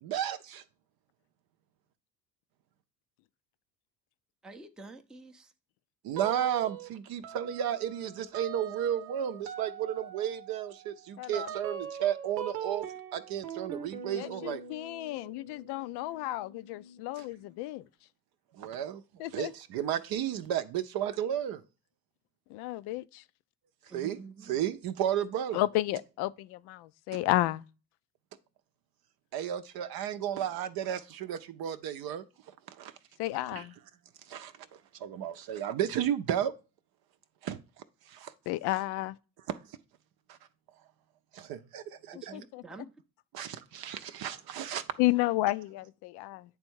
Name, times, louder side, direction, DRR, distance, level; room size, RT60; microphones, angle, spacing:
voice 1, 0.0-0.6 6.0-12.8 13.1-14.6 17.2-17.3 18.6-19.0 19.3-21.6 23.9-24.2 24.5-25.6 29.3-32.2 32.7-32.9 33.5-33.7 34.3-34.5 35.0-36.5 37.4-37.6 38.1-38.3 39.5-39.6 40.3-40.4 41.3-42.3 43.3-44.8, right 10 dB, 50° right, 0.6 m, -33 dB
voice 2, 4.4-5.5 23.9-24.6 42.1-42.9, right 3 dB, ahead, 0.5 m, -48 dB
sound 1, 6.1-6.9 7.2-17.6, right 8 dB, 85° right, 0.8 m, -43 dB
voice 3, 11.2-11.5 14.1-17.8 19.2-19.5 22.5-23.0 25.5-27.6 33.2-33.7 38.5-39.1 42.3-42.6 45.0-46.4, left 17 dB, 55° left, 0.5 m, -32 dB
8.9 x 3.4 x 4.5 m
hypercardioid pair, 65°, 49 cm